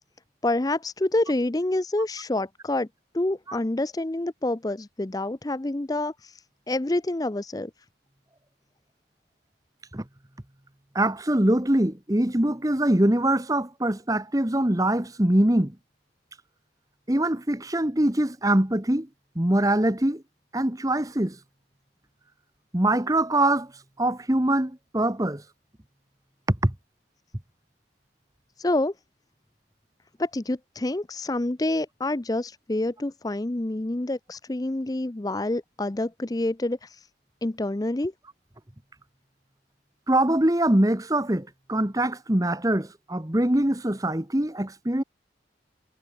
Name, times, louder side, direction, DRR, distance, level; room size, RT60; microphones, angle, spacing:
voice 1, 0.4-2.9 3.1-6.4 6.7-7.7 28.6-28.9 30.2-37.1 37.4-38.1, left 2 dB, 20° left, 0.5 m, -27 dB
voice 2, 10.9-15.8 17.1-19.1 19.3-20.2 20.5-21.4 22.7-23.7 24.0-25.4 26.5-26.7 40.1-45.0, right 1 dB, 20° right, 1.2 m, -23 dB
head